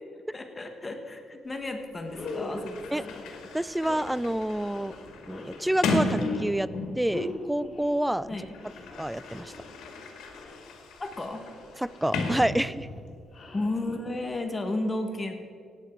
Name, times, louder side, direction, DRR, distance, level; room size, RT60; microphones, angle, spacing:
voice 1, 0.3-3.2 8.3-8.5 11.0-11.4 13.5-15.3, left 2 dB, 25° left, 5 dB, 1.3 m, -33 dB
sound 1, 1.5-1.6 2.0-14.4, left 2 dB, 40° left, 2.5 m, -41 dB
Sliding door, 1.8-7.2 8.1-13.1, left 2 dB, 85° left, 1.9 m, -35 dB
voice 2, 3.5-4.9 5.3-6.7 7.0-8.3 9.0-9.5 11.8-12.9, right 1 dB, 5° right, 18 dB, 0.3 m, -28 dB
17.0 x 9.1 x 4.6 m, 2.3 s
cardioid pair, 90°, 0 cm